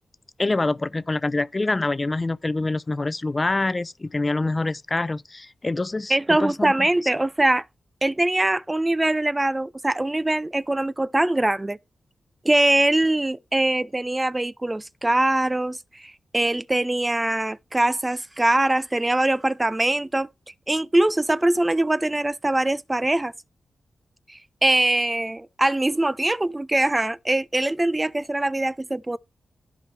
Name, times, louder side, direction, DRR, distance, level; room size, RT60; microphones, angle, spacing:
voice 1, 0.4-6.1 6.4-6.7, left 2 dB, 30° left, 0.5 m, -25 dB
voice 2, 6.1-7.7 8.0-11.8 12.4-23.3 24.3-29.2, right 1 dB, 20° right, 0.4 m, -22 dB
13.5 x 5.1 x 3.3 m
cardioid pair, 70°, 0 cm